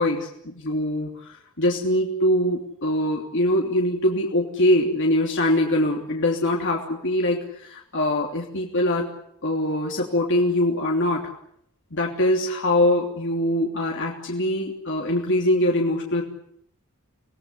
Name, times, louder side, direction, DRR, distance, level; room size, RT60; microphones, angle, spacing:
voice 1, 0.0-9.1 9.4-11.3 11.9-16.2, left 1 dB, 55° left, -1 dB, 3.2 m, -23 dB
26.0 x 18.5 x 9.8 m, 0.72 s
head